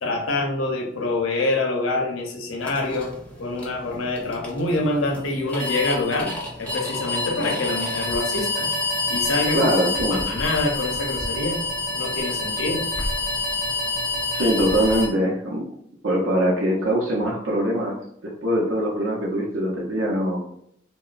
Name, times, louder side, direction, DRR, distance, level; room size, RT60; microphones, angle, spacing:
voice 1, 0.0-3.1 3.4-6.3 6.6-8.7 9.1-9.6 10.1-11.6 11.9-12.9, left 2 dB, 90° left, 1 dB, 0.6 m, -25 dB
sound 1, 2.6-15.1, left 2 dB, 5° left, 0.5 m, -28 dB
voice 2, 9.5-10.2 14.3-15.7 16.0-18.0 18.2-20.4, equal, 90° right, -3 dB, 0.6 m, -22 dB
2.8 x 2.1 x 2.4 m, 0.71 s
head